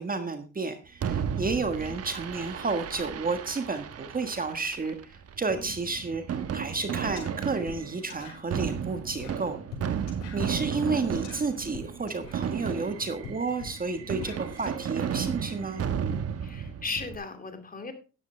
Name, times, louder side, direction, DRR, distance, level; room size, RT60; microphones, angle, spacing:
voice 1, 0.0-9.6 10.3-15.9, right 4 dB, 30° right, 8 dB, 1.5 m, -31 dB
Fireworks, 1.0-17.2, right 8 dB, 55° right, 1.1 m, -34 dB
sound 1, 6.7-6.8 7.0-14.7, left 6 dB, 90° left, 4.9 m, -45 dB
voice 2, 16.4-17.9, left 4 dB, 30° left, 7 dB, 2.5 m, -37 dB
12.0 x 10.5 x 3.3 m, 0.33 s
cardioid pair, 90°, 30 cm